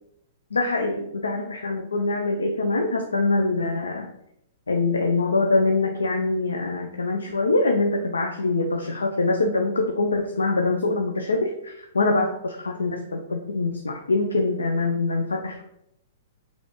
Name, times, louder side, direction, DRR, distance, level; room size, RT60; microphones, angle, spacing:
voice 1, 0.5-4.1 4.7-15.6, left 3 dB, 85° left, 3 dB, 0.3 m, -24 dB
4.0 x 2.4 x 3.0 m, 0.78 s
hypercardioid pair, 115°, 0 cm